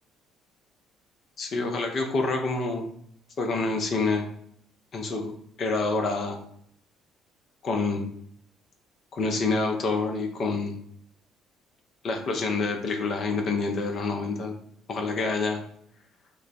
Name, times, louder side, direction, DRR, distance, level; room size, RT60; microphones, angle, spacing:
voice 1, 1.4-2.8 3.4-4.3 4.9-6.4 7.6-8.1 9.1-10.8 12.0-14.6 14.9-15.6, left 3 dB, 45° left, 3 dB, 0.6 m, -27 dB
3.0 x 2.1 x 4.0 m, 0.65 s
figure-of-eight pair, 50°, 0 cm